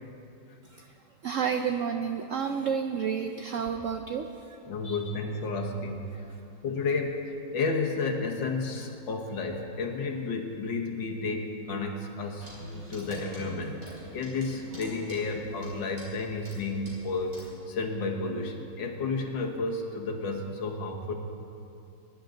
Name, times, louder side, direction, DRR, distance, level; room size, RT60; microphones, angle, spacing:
voice 1, 1.2-4.3 4.8-5.1, right 7 dB, 85° right, 6 dB, 0.6 m, -30 dB
voice 2, 4.7-6.1 6.6-12.5 12.9-17.3 17.7-21.1, left 3 dB, 85° left, 2 dB, 2.0 m, -32 dB
Clock, 12.4-17.6, right 1 dB, 65° right, 4.5 m, -46 dB
21.5 x 11.0 x 3.9 m, 2.7 s
omnidirectional pair, 2.0 m